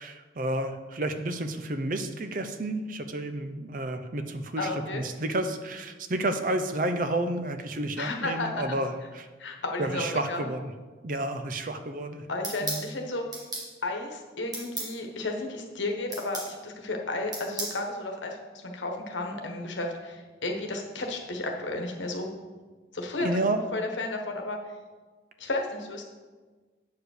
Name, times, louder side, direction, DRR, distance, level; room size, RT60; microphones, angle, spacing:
voice 1, 0.0-9.3 9.8-10.7 11.0-12.3 12.6-12.8 23.2-23.6, right 1 dB, 45° right, 8 dB, 0.6 m, -31 dB
voice 2, 4.6-5.0 8.0-8.8 9.4-10.5 12.3-13.2 13.8-22.3 22.9-24.6 25.4-26.0, left 2 dB, 80° left, 2 dB, 1.3 m, -33 dB
sound 1, 12.4-12.9 13.3-13.7 14.5-14.9 16.1-16.5 17.3-17.8, right 2 dB, 20° right, 1.6 m, -34 dB
8.4 x 4.9 x 6.5 m, 1.4 s
head